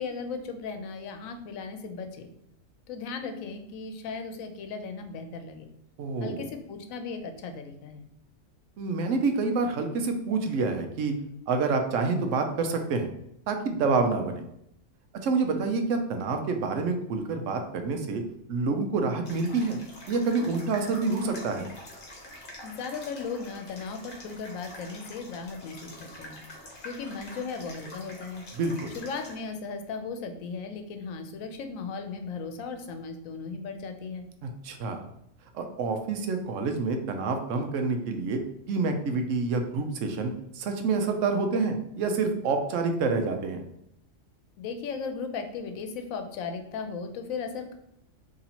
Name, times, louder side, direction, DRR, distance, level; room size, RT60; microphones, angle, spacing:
voice 1, 0.0-2.3 2.9-5.7 6.2-8.1 22.6-26.4 26.8-28.5 28.9-34.3 44.6-47.7, left 5 dB, 90° left, 7 dB, 1.0 m, -36 dB
voice 2, 6.0-6.5 8.8-11.2 11.5-13.1 13.5-14.4 15.2-18.2 18.5-19.8 20.1-21.7 28.6-29.0 34.4-35.1 35.5-38.4 38.7-43.6, right 4 dB, 75° right, 5 dB, 0.9 m, -27 dB
sound 1, 19.2-29.4, left 1 dB, 45° left, 1.1 m, -46 dB
2.9 x 2.9 x 4.0 m, 0.77 s
omnidirectional pair, 1.4 m